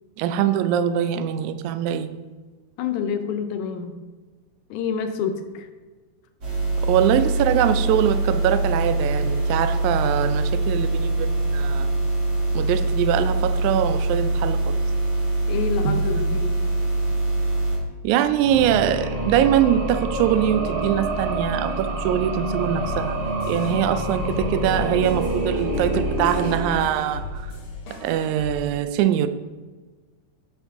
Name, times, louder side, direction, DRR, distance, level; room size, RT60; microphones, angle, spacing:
voice 1, 0.2-2.2 6.8-12.0 12.6-14.8 15.9-16.0 18.0-23.2 23.5-27.5 27.9-29.3, right 10 dB, 80° right, 1.9 m, -23 dB
voice 2, 2.8-4.0 4.7-5.7 15.5-16.6, left 6 dB, 80° left, 2.1 m, -27 dB
sound 1, 6.4-17.8, right 2 dB, 50° right, 2.6 m, -23 dB
sound 2, 18.3-27.4, right 1 dB, 65° right, 2.5 m, -27 dB
sound 3, 22.8-28.6, left 4 dB, 60° left, 1.7 m, -36 dB
11.0 x 5.3 x 3.6 m
omnidirectional pair, 3.5 m